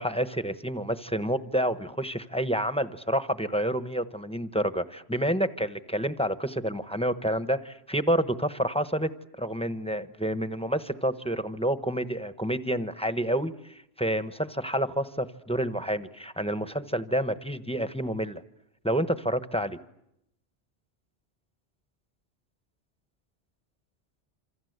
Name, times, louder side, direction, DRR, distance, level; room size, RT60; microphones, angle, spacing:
voice 1, 0.0-9.1 9.4-18.4 18.8-19.8, right 1 dB, 5° left, 11 dB, 1.0 m, -29 dB
27.5 x 26.5 x 8.1 m, 0.80 s
omnidirectional pair, 1.1 m